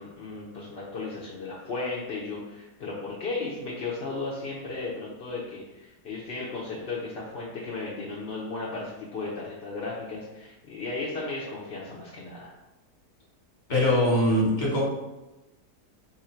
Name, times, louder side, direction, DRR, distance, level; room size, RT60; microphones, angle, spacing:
voice 1, 0.0-12.5, left 3 dB, 55° left, -6 dB, 0.7 m, -35 dB
voice 2, 13.7-14.8, left 1 dB, 30° left, -4 dB, 1.2 m, -22 dB
4.0 x 2.6 x 4.3 m, 1.0 s
omnidirectional pair, 1.8 m